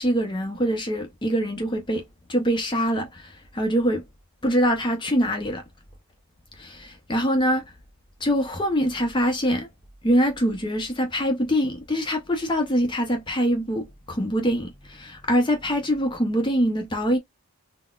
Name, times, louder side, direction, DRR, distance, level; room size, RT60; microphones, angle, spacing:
voice 1, 0.0-4.0 4.4-5.6 6.5-7.7 8.2-9.7 10.0-17.2, equal, 20° left, 0.5 m, -24 dB
3.8 x 2.1 x 2.3 m
head